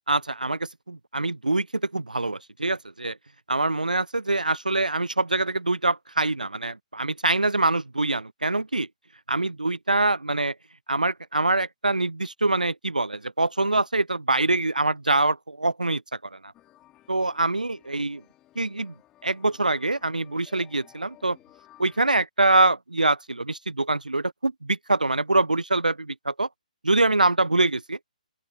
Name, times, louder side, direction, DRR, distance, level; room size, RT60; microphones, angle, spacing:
voice 1, 0.1-3.2 3.5-8.9 9.3-10.5 10.9-16.0 16.3-16.5 17.1-18.2 18.6-18.9 19.2-21.4 21.8-26.5 26.8-28.0, right 2 dB, 80° right, 0.6 m, -24 dB
sound 1, 16.5-22.2, left 15 dB, 15° left, 3.8 m, -57 dB
open air
figure-of-eight pair, 135°, 4 cm